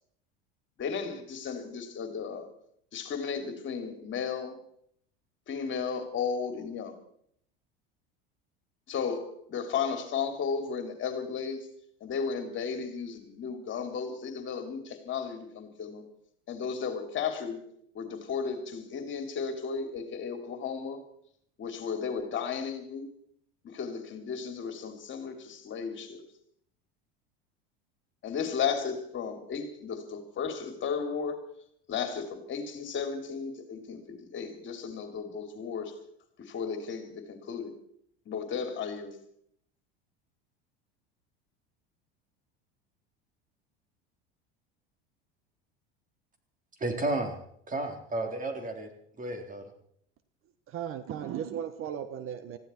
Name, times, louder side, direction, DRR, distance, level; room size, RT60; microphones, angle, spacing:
voice 1, 0.8-2.5 2.9-4.6 5.5-6.9 8.9-11.7 12.0-16.0 16.5-17.6 17.9-21.0 21.6-23.1 23.6-26.2 28.2-31.5 31.9-36.0 36.4-37.7 38.2-39.1, left 6 dB, 40° left, 6 dB, 3.2 m, -34 dB
voice 2, 46.8-47.4 47.7-48.9 49.2-49.7, right 2 dB, 25° right, 4 dB, 3.6 m, -32 dB
voice 3, 50.7-52.6, right 9 dB, 45° right, 11 dB, 1.3 m, -36 dB
20.5 x 15.0 x 4.6 m, 0.69 s
hypercardioid pair, 90°, 29 cm